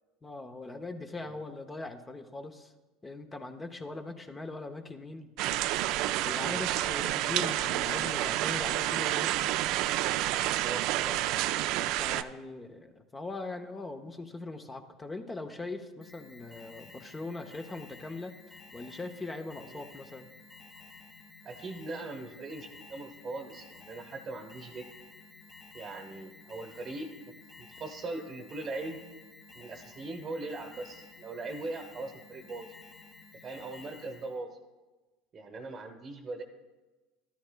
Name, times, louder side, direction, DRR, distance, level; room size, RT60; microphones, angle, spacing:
voice 1, 0.2-2.7 3.0-5.3 6.2-9.5 12.0-20.3, left 2 dB, 20° left, 6 dB, 0.8 m, -41 dB
sound 1, 5.4-12.2, right 14 dB, 65° right, 0.3 m, -29 dB
voice 2, 10.5-11.2 19.6-19.8 21.4-24.9 25.7-27.3 27.6-29.0 29.5-32.7 33.4-34.6 35.3-36.4, right 2 dB, 35° right, 3 dB, 0.9 m, -40 dB
Alarm, 16.0-34.4, left 3 dB, 35° left, 1.4 m, -53 dB
12.0 x 11.5 x 2.3 m, 1.2 s
hypercardioid pair, 85°, 0 cm